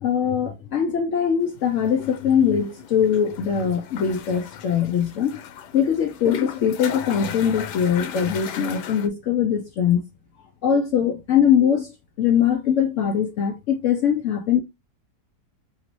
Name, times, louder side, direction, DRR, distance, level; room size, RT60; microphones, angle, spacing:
voice 1, 0.0-5.4 5.7-10.0 10.6-11.9 12.2-14.6, left 8 dB, 70° left, 0.7 m, -21 dB
sound 1, 1.5-9.1, left 9 dB, 85° left, 1.3 m, -36 dB
3.9 x 3.0 x 2.9 m
omnidirectional pair, 1.8 m